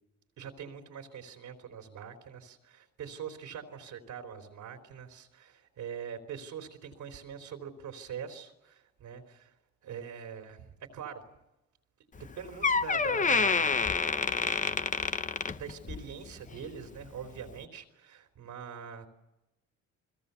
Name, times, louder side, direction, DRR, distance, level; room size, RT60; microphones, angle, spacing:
voice 1, 0.4-9.5 9.8-11.2 12.4-13.8 15.5-19.1, right 7 dB, 80° right, 4 dB, 3.5 m, -43 dB
Door, 12.2-12.3 12.6-16.1 16.5-16.8 17.5-17.6, left 4 dB, 25° left, 0.8 m, -28 dB
30.0 x 21.5 x 6.9 m, 0.96 s
cardioid pair, 90°, 30 cm